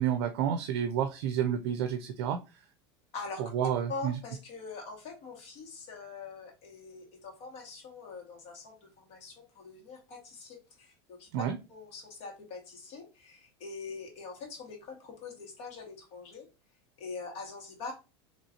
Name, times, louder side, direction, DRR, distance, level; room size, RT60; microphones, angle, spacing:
voice 1, 0.0-2.6 3.4-4.2 11.3-11.6, right 9 dB, 65° right, 0.5 m, -30 dB
voice 2, 3.1-3.4 3.9-11.3 11.7-16.5 17.0-17.9, left 4 dB, 55° left, 1.8 m, -43 dB
4.0 x 3.0 x 2.8 m
supercardioid pair, 130°, 14 cm